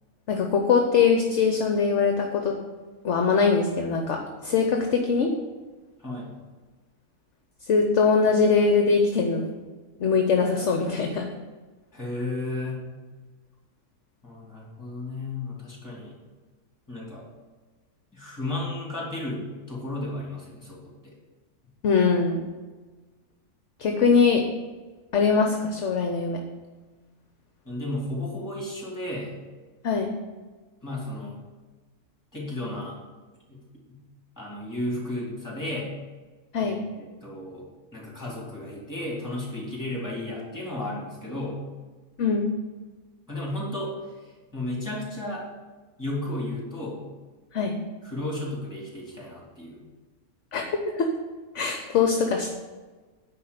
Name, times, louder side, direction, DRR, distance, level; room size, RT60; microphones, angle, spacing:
voice 1, 0.3-2.5 3.0-5.3 7.7-9.4 10.0-11.3 21.8-22.5 23.8-24.4 25.1-26.4 29.8-30.1 36.5-36.8 42.2-42.5 47.5-47.7 50.5-50.6 50.9-51.1 51.5-52.6, left 5 dB, 55° left, 3 dB, 1.0 m, -22 dB
voice 2, 6.0-6.3 11.9-12.8 14.2-16.2 16.9-17.2 18.1-21.1 27.6-29.4 30.8-31.4 32.3-33.0 33.5-34.0 34.4-35.9 36.6-37.6 37.9-41.6 43.3-43.9 44.2-45.4 46.0-47.0 48.0-49.8, left 1 dB, 10° left, -4 dB, 3.0 m, -33 dB
9.7 x 4.3 x 6.9 m, 1.3 s
omnidirectional pair, 1.6 m